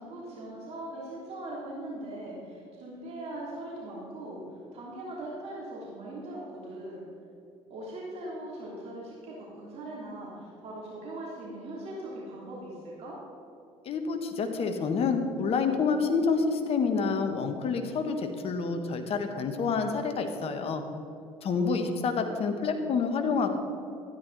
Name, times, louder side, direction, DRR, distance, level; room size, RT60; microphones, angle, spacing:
voice 1, 0.0-4.4 4.7-7.0 7.7-13.2 21.5-21.8 22.2-22.4, right 1 dB, 55° right, -5 dB, 3.1 m, -40 dB
voice 2, 13.8-20.8 21.4-23.6, left 5 dB, 50° left, 6 dB, 1.3 m, -28 dB
13.0 x 10.0 x 4.1 m, 2.6 s
hypercardioid pair, 60°, 13 cm